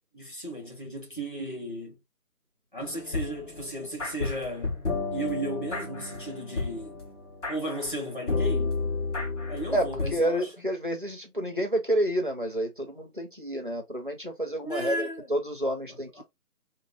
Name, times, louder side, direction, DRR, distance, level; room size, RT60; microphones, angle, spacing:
voice 1, 0.1-2.0 2.7-4.8 5.1-7.0 7.5-8.7 9.5-10.5 14.6-15.3 16.2-16.3, right 1 dB, 35° left, 0.9 m, -35 dB
sound 1, 2.8-10.2, left 3 dB, 50° left, 1.7 m, -32 dB
voice 2, 9.7-16.2, right 1 dB, 35° right, 0.6 m, -29 dB
3.1 x 2.2 x 3.2 m
figure-of-eight pair, 165°, 46 cm